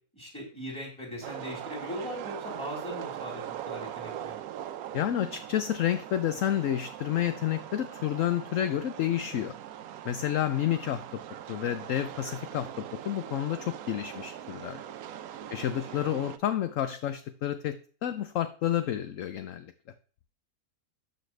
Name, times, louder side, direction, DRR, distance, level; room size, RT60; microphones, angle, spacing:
voice 1, 0.1-4.4 15.6-16.2, left 1 dB, 5° left, -2 dB, 4.1 m, -40 dB
sound 1, 1.2-16.4, right 11 dB, 70° right, 1.1 m, -41 dB
voice 2, 4.9-9.5 10.0-11.0 11.5-14.8 15.5-19.7, left 11 dB, 65° left, 11 dB, 0.9 m, -30 dB
12.5 x 6.7 x 3.3 m, 0.41 s
omnidirectional pair, 1.7 m